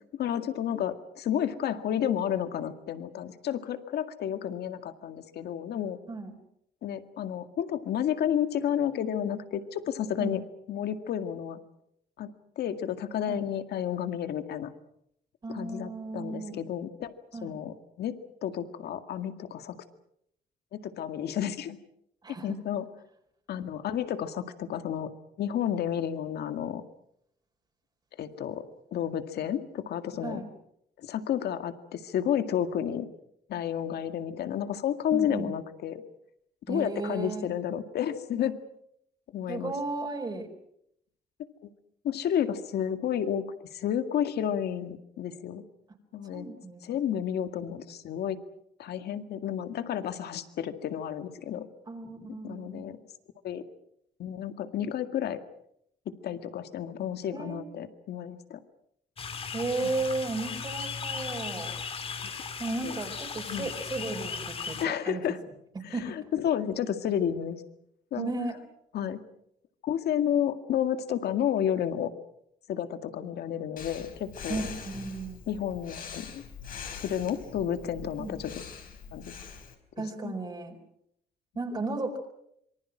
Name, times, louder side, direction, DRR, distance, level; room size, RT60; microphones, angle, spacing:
voice 1, 0.1-6.0 6.8-10.4 10.7-11.6 12.2-12.3 12.6-14.7 15.5-17.1 17.4-19.8 20.7-21.8 22.4-22.9 23.5-25.1 25.4-26.8 28.2-28.7 28.9-30.4 31.0-33.1 33.5-36.0 36.7-38.6 39.3-39.7 41.6-41.7 42.0-43.4 43.7-45.6 46.1-46.5 46.8-48.4 48.8-51.7 52.4-53.0 53.4-53.6 54.2-55.4 56.1-58.6 59.8-59.9 62.8-63.0 63.5-63.7 64.8-65.4 65.8-67.6 68.1-68.3 68.9-69.2 69.8-72.1 72.7-74.6 75.5-76.4 76.9-78.5 79.1-79.4 80.0-80.4, left 9 dB, 75° left, 8 dB, 2.0 m, -31 dB
voice 2, 15.4-16.6 17.3-17.6 22.2-22.5 30.2-30.5 35.1-35.5 36.7-37.5 39.5-40.5 46.3-46.8 51.9-52.9 57.3-57.7 59.5-61.7 62.6-65.2 65.9-66.2 68.2-68.6 74.5-75.4 78.2-78.3 80.0-80.8 81.5-82.2, right 3 dB, 25° right, 2 dB, 4.4 m, -34 dB
sound 1, 59.2-64.9, left 5 dB, 35° left, 1.9 m, -37 dB
Breathing, 73.8-79.7, left 6 dB, 55° left, 4.7 m, -43 dB
26.5 x 24.5 x 6.2 m, 0.74 s
cardioid pair, 155°, 17 cm